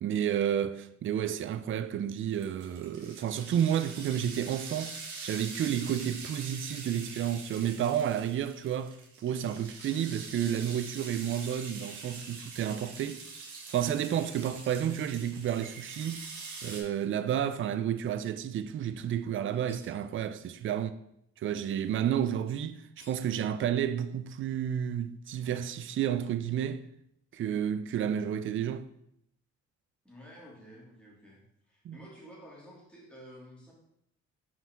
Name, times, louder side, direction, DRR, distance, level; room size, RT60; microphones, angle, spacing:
voice 1, 0.0-4.9 5.2-9.0 9.2-13.2 13.7-16.2 16.6-20.9 21.4-26.8 27.3-28.9 31.8-32.0, right 9 dB, 45° right, 0.4 m, -31 dB
sound 1, 2.3-16.8, right 4 dB, 85° right, 1.4 m, -44 dB
sound 2, 9.8-10.2 11.9-12.1 14.2-14.9 16.7-16.9 19.5-20.1 23.0-23.3, left 1 dB, 55° left, 2.2 m, -58 dB
voice 2, 30.0-33.7, equal, 5° left, 2.4 m, -51 dB
5.6 x 4.8 x 3.5 m
cardioid pair, 90°, 30 cm